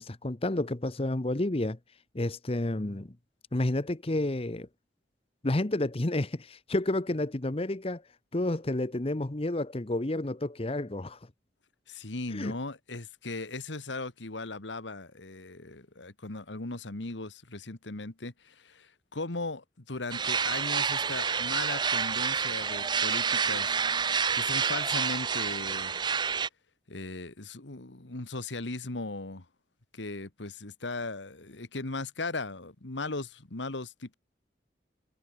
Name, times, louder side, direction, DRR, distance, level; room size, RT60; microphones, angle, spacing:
voice 1, 0.0-1.8 2.1-3.1 3.5-4.7 5.4-8.0 8.3-11.2 12.3-12.5, left 1 dB, 30° left, 0.9 m, -30 dB
voice 2, 11.9-23.8 24.3-25.9 26.9-29.5 29.9-34.2, left 2 dB, 85° left, 1.9 m, -38 dB
sound 1, 20.1-26.5, right 6 dB, 25° right, 0.5 m, -28 dB
head